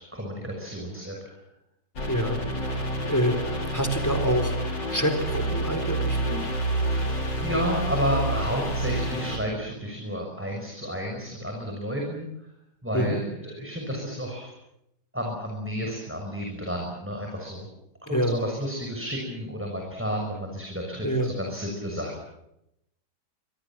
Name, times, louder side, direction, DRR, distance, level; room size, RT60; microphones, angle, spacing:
voice 1, 0.0-1.4 6.8-12.5 12.8-14.5 15.1-17.7 18.0-22.1, equal, 5° right, 0 dB, 6.4 m, -31 dB
sound 1, 2.0-9.4, right 1 dB, 90° left, 4.9 m, -28 dB
voice 2, 2.1-6.6 12.9-13.2 18.1-18.4 21.0-21.3, equal, 10° left, 8 dB, 4.0 m, -27 dB
28.0 x 23.0 x 7.6 m, 0.82 s
omnidirectional pair, 1.9 m